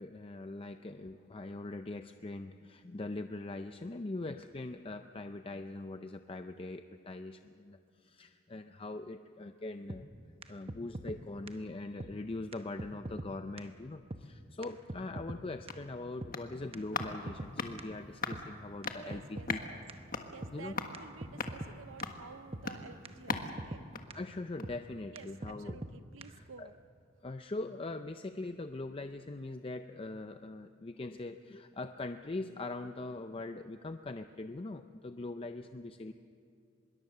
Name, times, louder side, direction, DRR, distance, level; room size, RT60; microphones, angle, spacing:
voice 1, 0.0-10.0 10.5-19.6 20.5-20.8 24.1-25.8 26.3-26.7 27.2-36.1, left 2 dB, 30° left, 8 dB, 0.5 m, -42 dB
sound 1, 9.9-10.0 10.4-10.5 10.7-11.2 11.5-11.6 12.0-12.1 12.5-12.6 12.8-13.3 13.6-13.7 14.1-14.2 14.6-14.7 14.9-15.4 15.7-15.8 16.2-16.3 16.7-17.5 17.8-17.9 18.3-18.4 18.8-18.9 19.1-19.6 19.9-20.0 20.4-20.5 20.9-21.0 21.2-21.7 22.0-22.1 22.5-22.6 23.1-23.2 23.3-23.8 24.1-24.2 24.6-24.8 25.2-25.3 25.4-25.9 26.2-26.3, right 1 dB, 30° right, 0.9 m, -41 dB
sound 2, 15.3-24.9 25.2-25.3, left 4 dB, 50° left, 1.5 m, -42 dB
voice 2, 19.0-19.8 20.3-23.9 25.1-26.7, right 5 dB, 85° right, 10 dB, 0.6 m, -52 dB
24.5 x 22.0 x 6.7 m, 2.4 s
head